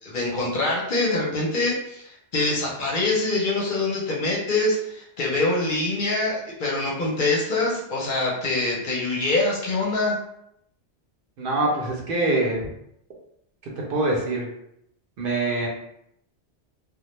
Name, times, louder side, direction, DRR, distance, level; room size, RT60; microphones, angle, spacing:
voice 1, 0.0-10.2, left 2 dB, 55° left, -3 dB, 0.7 m, -24 dB
voice 2, 11.4-12.7 13.9-14.5 15.2-15.7, right 2 dB, 60° right, -2 dB, 0.7 m, -24 dB
2.1 x 2.1 x 3.0 m, 0.77 s
omnidirectional pair, 1.1 m